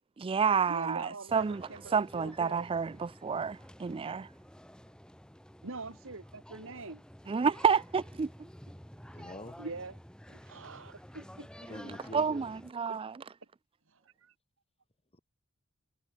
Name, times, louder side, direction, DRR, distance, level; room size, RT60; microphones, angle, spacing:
voice 1, 0.2-4.3 7.3-8.3 11.7-11.8 12.1-13.2, right 6 dB, 25° right, 0.3 m, -30 dB
voice 2, 0.7-2.6 5.6-7.0 9.2-10.0 10.3-11.5 12.9-13.0 13.9-14.3, right 3 dB, 60° right, 2.0 m, -44 dB
sound 1, 1.3-12.7, equal, 5° left, 2.7 m, -51 dB
voice 3, 9.1-9.6 11.7-12.5 15.1-15.2, left 1 dB, 25° left, 2.6 m, -46 dB
head